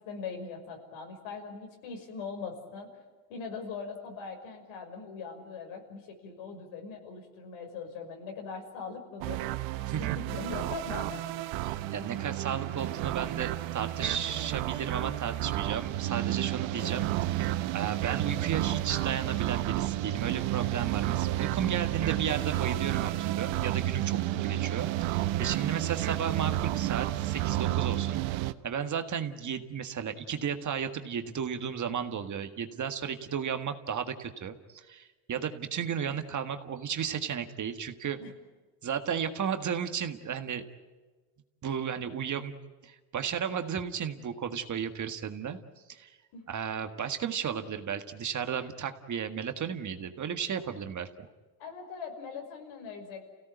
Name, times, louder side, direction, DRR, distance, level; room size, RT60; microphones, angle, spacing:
voice 1, 0.0-2.9 3.3-11.2 16.8-17.1 24.3-24.6 25.4-25.5 38.2-38.3 46.3-46.5 51.6-53.2, left 5 dB, 70° left, 4 dB, 6.1 m, -41 dB
sound 1, 9.2-28.5, right 15 dB, 65° right, 1.1 m, -31 dB
voice 2, 11.6-28.2 28.6-38.2 38.8-40.6 41.6-42.5 42.8-45.6 45.9-46.1 46.5-51.3, right 7 dB, 35° right, 7 dB, 1.7 m, -34 dB
29.0 x 17.0 x 9.3 m, 1.3 s
cardioid pair, 115°, 49 cm